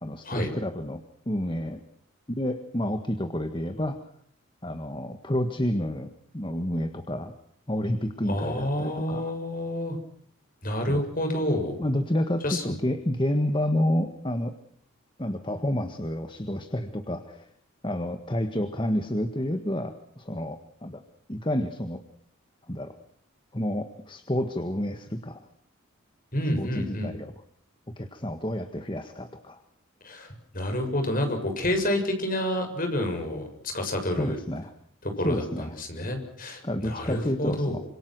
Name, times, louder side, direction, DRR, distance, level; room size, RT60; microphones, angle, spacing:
voice 1, 0.0-1.8 2.4-4.0 4.6-7.3 7.7-9.3 10.9-11.0 11.8-14.5 15.2-17.5 17.8-21.0 21.3-22.0 22.7-22.9 23.5-25.4 26.6-27.3 28.0-29.6 34.2-34.7 35.2-35.7 36.6-37.8, left 1 dB, 25° left, 8 dB, 1.6 m, -29 dB
voice 2, 8.3-10.0 10.6-11.8 12.4-12.8 26.3-27.2 30.0-34.4 35.0-37.8, left 1 dB, 40° left, 5 dB, 7.1 m, -29 dB
28.0 x 26.0 x 6.2 m, 0.63 s
head